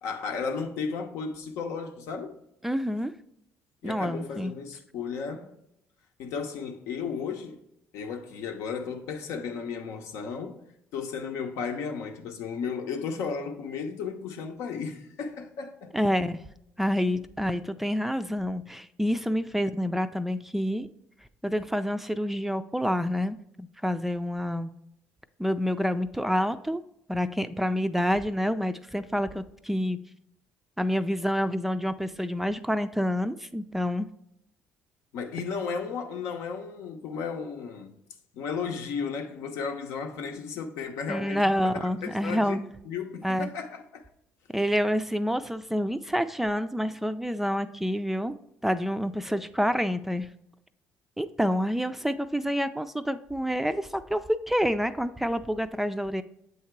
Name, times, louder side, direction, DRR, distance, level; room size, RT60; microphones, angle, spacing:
voice 1, 0.0-2.4 3.8-5.6 6.2-7.6 7.9-10.6 10.9-16.0 35.1-37.9 38.3-44.1 49.2-49.4, left 5 dB, 80° left, 0.8 m, -34 dB
voice 2, 2.6-3.1 3.8-4.5 15.9-16.4 16.8-20.9 21.4-24.7 25.4-26.8 27.1-30.0 30.8-34.1 41.1-42.7 43.2-43.5 44.5-48.4 48.6-50.3 51.2-56.2, equal, 5° right, 0.3 m, -28 dB
7.7 x 2.8 x 4.5 m
cardioid pair, 85°, 5 cm